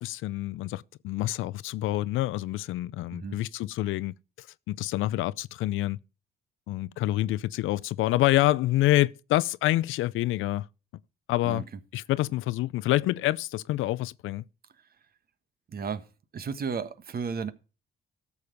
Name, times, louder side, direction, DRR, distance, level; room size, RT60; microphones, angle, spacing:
voice 1, 0.0-6.0 6.7-10.7 11.3-11.6 11.9-14.4, left 16 dB, 85° left, 0.5 m, -27 dB
voice 2, 15.7-16.1 16.3-17.5, right 6 dB, 50° right, 1.4 m, -33 dB
13.0 x 6.9 x 5.2 m
cardioid pair, 90°, 20 cm